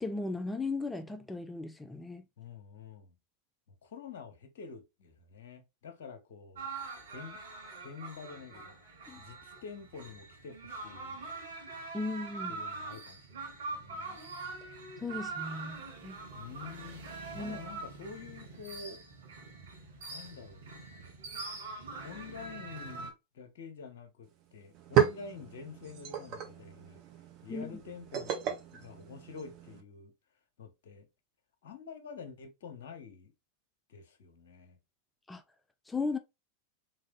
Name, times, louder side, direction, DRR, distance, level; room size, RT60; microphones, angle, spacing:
voice 1, 0.0-2.2 9.1-9.2 11.9-12.6 15.0-16.2 17.3-17.6 27.5-27.7 35.3-35.4 35.9-36.2, left 3 dB, 10° left, 0.4 m, -36 dB
voice 2, 2.4-3.1 3.8-6.7 7.1-7.4 7.8-8.8 9.2-11.2 12.5-14.2 16.3-19.0 20.1-21.1 22.0-27.0 27.4-28.4 28.7-30.1 30.6-31.1 31.6-33.3 33.9-34.8, left 5 dB, 60° left, 1.0 m, -48 dB
sound 1, 6.5-23.1, right 3 dB, 65° right, 1.6 m, -43 dB
sound 2, 24.2-24.3 24.6-29.8, right 9 dB, 40° right, 1.0 m, -33 dB
3.8 x 3.3 x 3.4 m
figure-of-eight pair, 90°, 0 cm